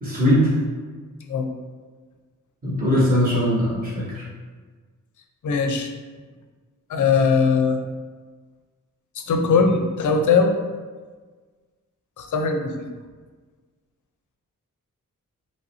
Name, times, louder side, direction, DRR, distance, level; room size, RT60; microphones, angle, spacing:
voice 1, 0.0-0.5 2.6-4.2, equal, 25° right, -8 dB, 1.2 m, -20 dB
voice 2, 5.4-5.9 6.9-7.8 9.2-10.6 12.2-12.9, left 5 dB, 65° left, 5 dB, 0.5 m, -20 dB
3.2 x 2.6 x 4.1 m, 1.4 s
wide cardioid pair, 105°, 32 cm